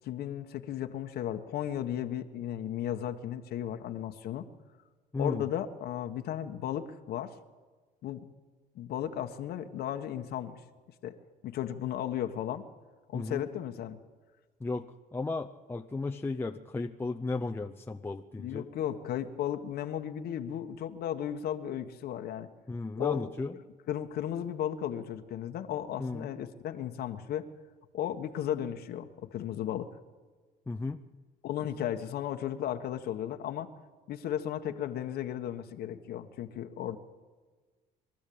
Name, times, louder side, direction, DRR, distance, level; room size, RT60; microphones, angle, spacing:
voice 1, 0.0-4.5 5.2-7.3 8.0-8.2 8.7-10.5 11.0-11.1 11.4-12.6 13.1-14.0 18.4-22.5 23.0-23.3 23.9-27.5 27.9-29.9 31.4-33.7 34.1-37.0, left 10 dB, 70° left, 6 dB, 1.4 m, -35 dB
voice 2, 5.1-5.5 13.1-13.5 14.6-18.7 22.7-23.6 26.0-26.3 30.7-31.0, left 3 dB, 15° left, 3 dB, 0.7 m, -35 dB
23.5 x 13.0 x 8.7 m, 1.4 s
cardioid pair, 110°, 17 cm